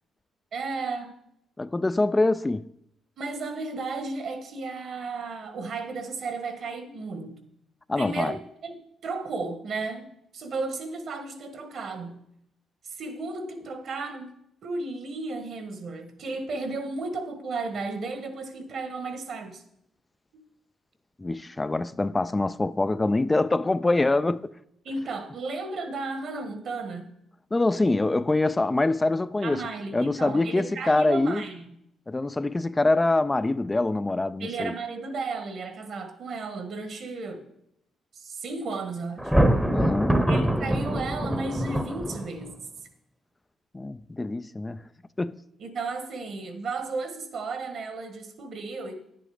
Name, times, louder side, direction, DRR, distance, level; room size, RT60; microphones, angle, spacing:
voice 1, 0.5-1.2 3.2-7.4 7.9-10.1 10.3-12.2 12.8-14.3 14.6-19.6 20.3-20.4 24.8-27.1 29.4-31.6 34.4-37.4 38.1-39.3 40.2-42.5 45.6-49.1, right 3 dB, 60° right, 1.5 m, -34 dB
voice 2, 1.6-2.7 7.9-8.3 21.2-24.5 27.5-29.6 29.9-31.4 32.1-34.7 39.7-40.2 43.7-44.8 45.2-45.4, left 2 dB, 20° left, 0.3 m, -24 dB
Thunder, 39.2-42.5, right 1 dB, 5° right, 0.8 m, -24 dB
10.0 x 7.6 x 5.0 m
cardioid pair, 90°, 0 cm